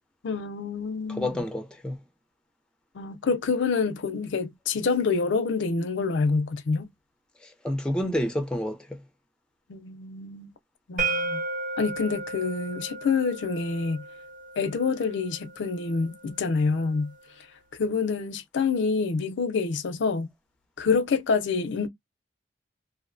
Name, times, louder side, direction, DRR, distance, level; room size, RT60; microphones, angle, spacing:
voice 1, 0.2-1.3 2.9-6.9 9.7-10.5 10.9-11.4 11.8-14.0 14.6-17.5 17.7-20.3 20.8-21.9, left 4 dB, 80° left, 0.4 m, -27 dB
voice 2, 1.1-2.0 7.4-9.0, left 1 dB, 5° left, 0.4 m, -29 dB
sound 1, 11.0-16.8, right 3 dB, 45° right, 0.8 m, -35 dB
2.5 x 2.1 x 2.5 m
head